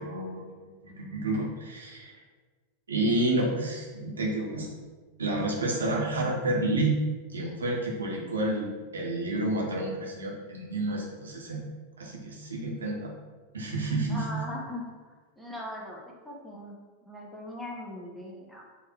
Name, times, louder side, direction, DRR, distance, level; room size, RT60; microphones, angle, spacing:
voice 1, 0.0-2.2 2.9-4.8 5.2-7.0 7.3-11.6 12.0-13.1 13.5-14.4, right 2 dB, 70° right, -1 dB, 1.4 m, -30 dB
voice 2, 14.1-14.8 15.4-16.8 17.1-18.6, left 1 dB, ahead, -3 dB, 1.1 m, -39 dB
7.5 x 3.1 x 4.6 m, 1.4 s
figure-of-eight pair, 90°, 0 cm